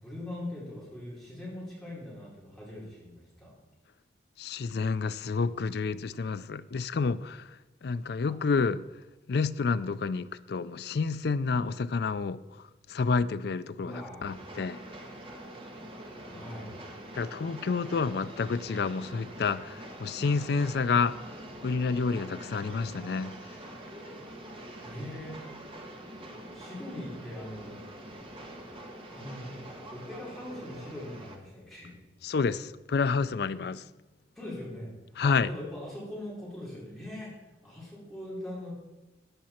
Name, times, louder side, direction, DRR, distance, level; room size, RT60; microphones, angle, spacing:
voice 1, 0.0-3.5 13.8-14.3 16.2-16.8 24.8-25.4 26.5-27.8 29.1-31.9 34.4-34.9 35.2-37.3 37.6-38.7, left 1 dB, ahead, 3.9 m, -41 dB
voice 2, 4.4-8.8 9.3-12.4 12.9-14.8 17.2-21.2 21.6-23.6 32.2-33.8 35.2-35.5, left 4 dB, 60° left, 0.4 m, -29 dB
Train, 14.2-31.4, right 1 dB, 30° right, 1.5 m, -45 dB
13.5 x 9.5 x 4.4 m
head